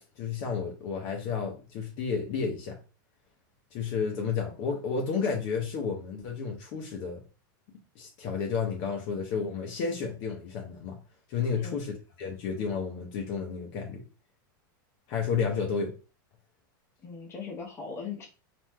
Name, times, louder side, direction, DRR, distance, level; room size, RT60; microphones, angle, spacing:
voice 1, 0.2-2.8 3.7-7.2 8.0-11.0 11.3-11.9 12.2-14.0 15.1-15.9, left 5 dB, 45° left, 0.7 m, -31 dB
voice 2, 17.0-18.3, left 5 dB, 25° left, 0.9 m, -39 dB
3.2 x 2.5 x 2.2 m
supercardioid pair, 135°, 11 cm